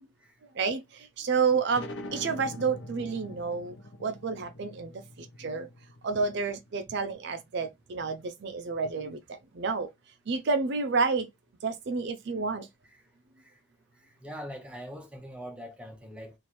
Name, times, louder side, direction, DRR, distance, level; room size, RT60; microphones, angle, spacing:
voice 1, 0.5-5.7 6.0-9.9 10.3-11.3 11.6-12.7, right 4 dB, 55° right, 0.4 m, -30 dB
sound 1, 1.7-7.0, left 1 dB, 60° left, 0.7 m, -44 dB
voice 2, 14.2-16.3, equal, 5° right, 0.7 m, -42 dB
3.0 x 2.5 x 4.2 m
head